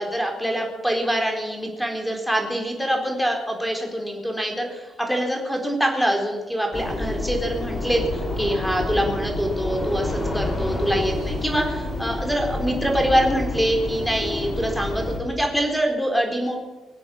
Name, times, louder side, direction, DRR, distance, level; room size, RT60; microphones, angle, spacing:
voice 1, 0.0-16.6, equal, ahead, 2 dB, 3.8 m, -24 dB
sound 1, 6.7-15.2, left 1 dB, 35° left, 5.3 m, -28 dB
22.0 x 8.3 x 7.1 m, 1.2 s
cardioid pair, 90°, 0 cm